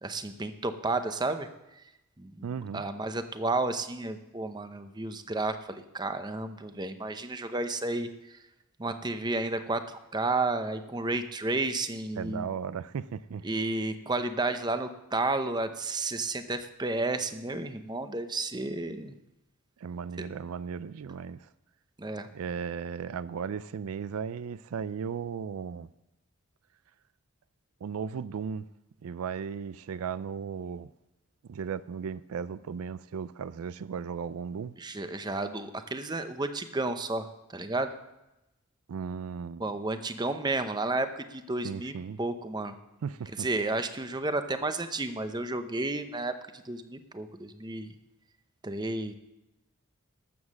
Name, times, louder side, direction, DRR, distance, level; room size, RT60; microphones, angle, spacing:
voice 1, 0.0-1.8 2.2-2.5 2.7-8.4 8.8-12.5 13.4-19.1 22.0-22.3 34.8-37.9 39.6-42.8 43.4-48.0 48.6-49.1, right 2 dB, 20° right, 9 dB, 0.7 m, -32 dB
voice 2, 2.4-2.8 12.2-13.4 19.8-21.5 22.3-25.9 27.8-28.7 29.0-30.9 31.5-34.7 38.9-39.6 41.6-42.2 43.0-43.5, right 6 dB, 85° right, 16 dB, 0.4 m, -36 dB
13.0 x 7.2 x 7.3 m, 0.95 s
head